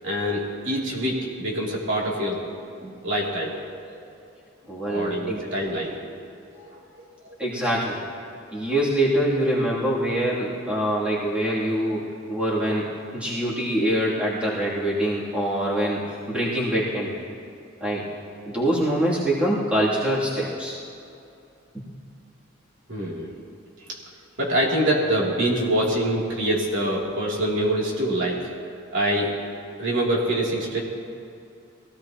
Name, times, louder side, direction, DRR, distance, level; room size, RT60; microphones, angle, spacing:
voice 1, 0.0-2.4 2.8-4.0 4.9-6.0 6.5-7.3 22.9-23.3 23.8-23.9 24.4-28.4 28.9-29.4 29.8-30.8, right 1 dB, 65° right, -4 dB, 3.1 m, -25 dB
voice 2, 4.7-5.4 7.4-8.0 8.5-16.0 16.3-17.2 17.8-18.0 18.4-20.7 21.7-21.8, right 1 dB, 5° right, -8 dB, 2.9 m, -24 dB
23.0 x 16.5 x 3.0 m, 2.6 s
head